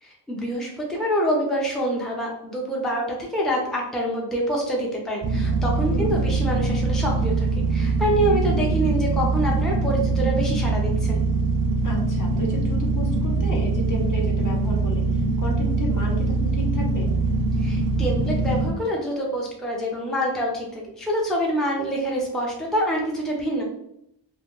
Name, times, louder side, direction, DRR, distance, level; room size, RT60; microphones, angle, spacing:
voice 1, 0.0-11.2 17.6-23.6, equal, ahead, -2 dB, 0.6 m, -26 dB
sound 1, 5.2-18.7, right 3 dB, 45° right, 0.5 m, -23 dB
voice 2, 11.8-17.1, left 1 dB, 40° left, -1 dB, 0.8 m, -33 dB
2.2 x 2.2 x 3.0 m, 0.77 s
cardioid pair, 45°, 47 cm